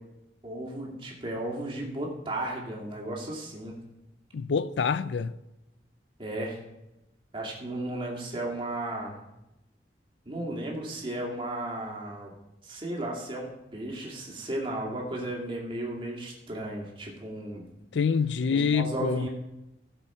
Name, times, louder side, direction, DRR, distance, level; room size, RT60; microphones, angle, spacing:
voice 1, 0.4-3.8 6.2-6.6 7.3-9.1 10.3-12.3 12.6-17.6 18.5-19.3, right 1 dB, 30° right, 2.3 m, -34 dB
voice 2, 4.3-5.3 17.9-19.3, left 5 dB, 90° left, 0.4 m, -26 dB
16.5 x 6.7 x 4.4 m
head